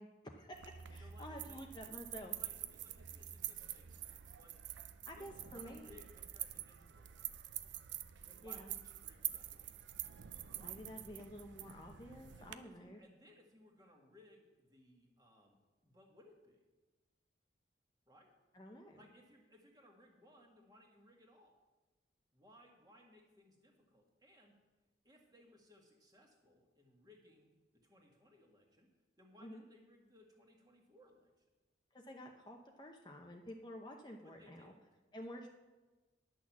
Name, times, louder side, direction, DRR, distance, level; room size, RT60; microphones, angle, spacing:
voice 1, 0.0-2.4 5.1-5.9 8.4-8.7 10.6-13.0 18.5-19.0 29.4-29.6 31.9-34.7 35.1-35.5, equal, 25° left, 1 dB, 0.7 m, -50 dB
sound 1, 0.5-12.6, right 12 dB, 80° right, 0.5 m, -47 dB
voice 2, 1.0-1.6 2.3-4.5 5.1-7.6 8.3-9.8 10.5-10.8 12.4-15.6 15.8-16.6 18.1-18.3 19.0-21.6 22.3-24.5 25.0-27.5 27.8-28.9 29.2-31.5 34.4-34.8, left 1 dB, 20° right, 0 dB, 1.7 m, -64 dB
11.0 x 6.3 x 7.2 m, 1.2 s
head